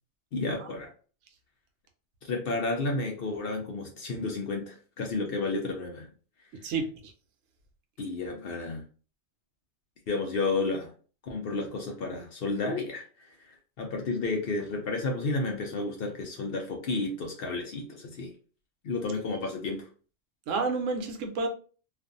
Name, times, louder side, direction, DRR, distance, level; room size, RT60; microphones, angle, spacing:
voice 1, 0.3-0.9 2.2-6.1 8.0-8.8 10.1-10.9 11.2-13.0 13.8-18.3 18.8-19.9, left 3 dB, 60° left, 1 dB, 0.7 m, -31 dB
voice 2, 6.6-7.1 20.5-21.5, right 4 dB, 80° right, 4 dB, 0.9 m, -30 dB
2.4 x 2.4 x 2.5 m, 0.39 s
omnidirectional pair, 1.3 m